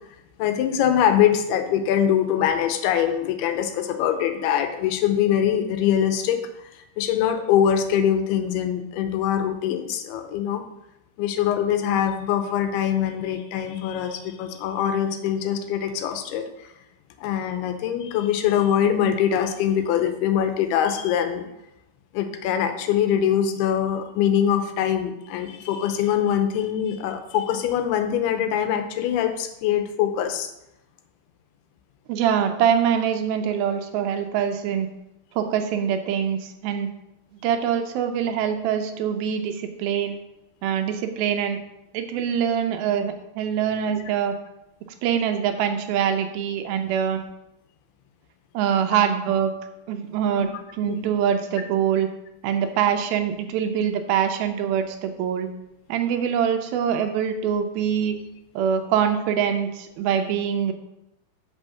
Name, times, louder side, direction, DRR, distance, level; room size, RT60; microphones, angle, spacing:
voice 1, 0.4-10.6 11.2-16.7 17.2-21.5 22.1-30.5 50.4-50.5 50.8-51.0, left 9 dB, 85° left, 7 dB, 2.7 m, -23 dB
voice 2, 32.1-34.9 35.3-36.9 37.4-40.2 40.6-41.6 41.9-44.4 45.0-47.2 48.5-49.5 49.9-50.5 50.8-52.1 52.4-55.5 55.9-58.2 58.6-60.7, right 8 dB, 80° right, 6 dB, 2.4 m, -24 dB
6.3 x 5.5 x 6.2 m, 0.86 s
omnidirectional pair, 4.6 m